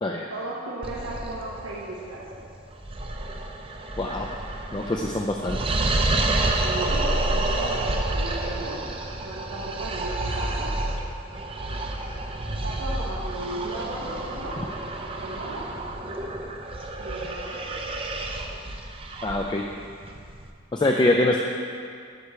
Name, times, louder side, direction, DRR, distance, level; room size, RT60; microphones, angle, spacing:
voice 1, 0.3-2.4 6.6-8.8 9.2-10.7 12.6-14.6 15.2-15.7 17.0-17.9, right 2 dB, 90° right, -6 dB, 1.0 m, -35 dB
sound 1, 0.8-20.5, right 2 dB, 25° right, 0.5 m, -29 dB
voice 2, 4.0-4.3 4.7-5.6 19.2-19.6 20.7-21.4, left 2 dB, 20° left, 1 dB, 0.4 m, -24 dB
8.0 x 4.9 x 6.7 m, 2.2 s
head